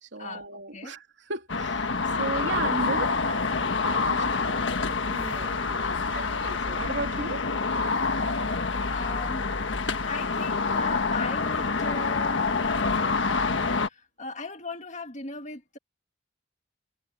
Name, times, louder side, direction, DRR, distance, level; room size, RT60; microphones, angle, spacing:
voice 1, 0.0-1.9 2.2-5.8 6.1-7.4, right 3 dB, 75° right, 3.0 m, -36 dB
sound 1, 1.5-13.9, left 4 dB, 80° left, 1.4 m, -27 dB
voice 2, 8.9-9.5 10.1-12.4 13.8-15.8, left 3 dB, 40° left, 1.9 m, -38 dB
head